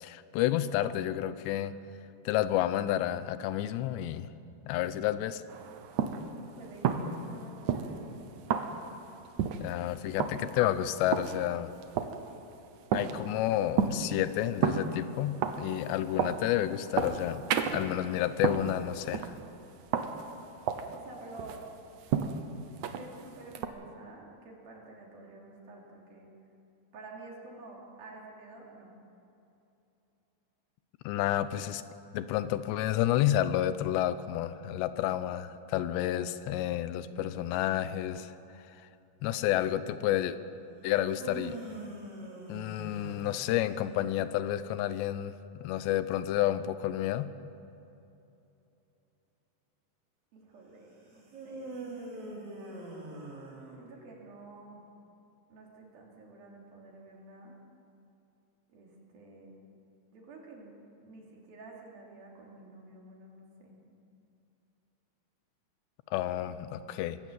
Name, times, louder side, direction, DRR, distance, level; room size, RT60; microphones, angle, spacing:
voice 1, 0.0-1.7 2.3-4.3 4.7-5.4 9.6-11.7 12.9-17.4 17.7-19.3 31.0-31.8 32.1-38.8 39.2-40.4 40.8-41.6 42.5-47.3 66.1-67.2, left 12 dB, 90° left, 13 dB, 3.0 m, -30 dB
sound 1, 5.5-23.7, right 7 dB, 75° right, 1.8 m, -34 dB
voice 2, 6.4-8.3 20.9-21.6 22.8-26.3 26.9-28.9 50.3-52.4 53.8-54.8 55.5-57.6 58.7-59.6 60.1-63.8, right 2 dB, 60° right, -2 dB, 4.8 m, -50 dB
sound 2, 40.9-44.2 51.3-54.3, right 2 dB, 45° right, 5.2 m, -43 dB
23.5 x 16.0 x 7.6 m, 2.8 s
omnidirectional pair, 4.9 m